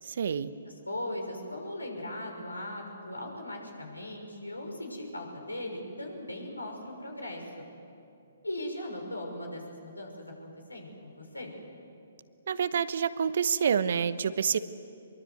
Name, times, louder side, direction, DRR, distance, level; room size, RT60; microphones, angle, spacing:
voice 1, 0.0-0.5 12.5-14.6, right 7 dB, 55° right, 14 dB, 1.0 m, -27 dB
voice 2, 0.6-7.7 8.4-11.5, left 1 dB, 90° left, 2 dB, 6.0 m, -39 dB
24.5 x 23.5 x 8.0 m, 2.6 s
figure-of-eight pair, 130°, 0 cm